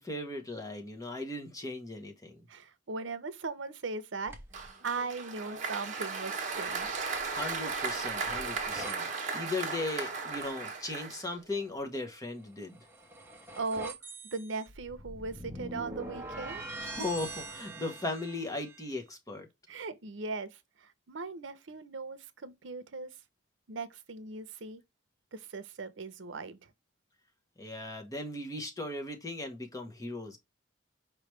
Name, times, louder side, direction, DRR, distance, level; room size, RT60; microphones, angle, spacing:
voice 1, 0.0-2.4 7.2-12.8 16.8-19.5 27.6-30.4, left 2 dB, 15° left, 0.9 m, -37 dB
voice 2, 2.5-4.3 4.8-7.0 13.6-13.9 14.3-16.7 19.7-23.2 23.7-24.8 25.3-26.7, right 4 dB, 75° right, 0.7 m, -39 dB
sound 1, 4.3-4.7 6.6-9.0 12.5-18.9, right 2 dB, 10° right, 0.8 m, -44 dB
Applause, 4.5-11.6, right 4 dB, 40° right, 1.0 m, -36 dB
4.9 x 3.1 x 3.1 m
head